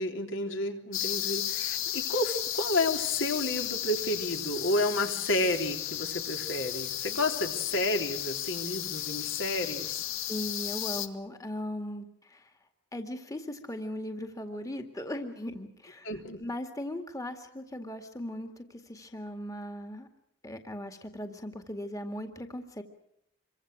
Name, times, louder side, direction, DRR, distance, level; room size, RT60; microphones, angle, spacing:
voice 1, 0.0-10.0 16.0-16.4, left 2 dB, 70° left, 4 dB, 3.7 m, -31 dB
sound 1, 0.9-11.1, left 11 dB, 85° left, 1.8 m, -34 dB
voice 2, 10.3-12.5 12.9-16.1 16.4-20.1 20.4-22.8, left 1 dB, 15° left, 6 dB, 2.0 m, -38 dB
27.5 x 24.5 x 6.3 m, 0.78 s
head